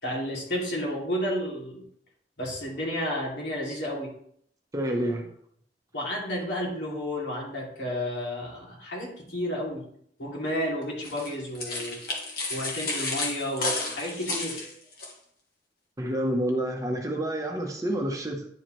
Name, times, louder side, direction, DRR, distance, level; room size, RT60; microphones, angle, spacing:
voice 1, 0.0-1.8 2.4-4.1 5.9-9.9 10.2-12.0 12.5-14.7, equal, 75° left, -3 dB, 2.7 m, -31 dB
voice 2, 4.7-5.3 16.0-18.5, right 1 dB, 20° right, 2 dB, 0.9 m, -28 dB
sound 1, 11.0-15.1, left 3 dB, 60° left, 1.7 m, -32 dB
10.0 x 4.8 x 3.1 m, 0.65 s
head